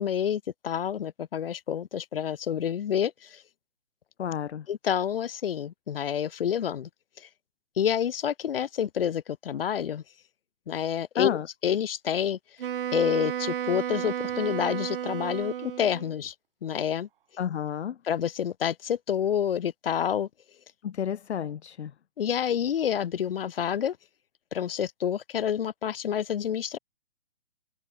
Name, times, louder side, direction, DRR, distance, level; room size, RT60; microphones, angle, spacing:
voice 1, 0.0-3.4 4.7-6.9 7.2-7.3 7.8-10.0 10.7-12.4 12.9-16.3 16.6-17.1 18.1-20.3 22.2-24.0 24.5-26.8, left 9 dB, 55° left, 2.3 m, -28 dB
voice 2, 4.2-4.7 11.2-11.5 17.4-18.0 20.8-21.9, left 9 dB, 75° left, 0.8 m, -31 dB
Wind instrument woodwind instrument, 12.6-16.2, right 10 dB, 55° right, 0.6 m, -32 dB
hypercardioid pair, 150°, 34 cm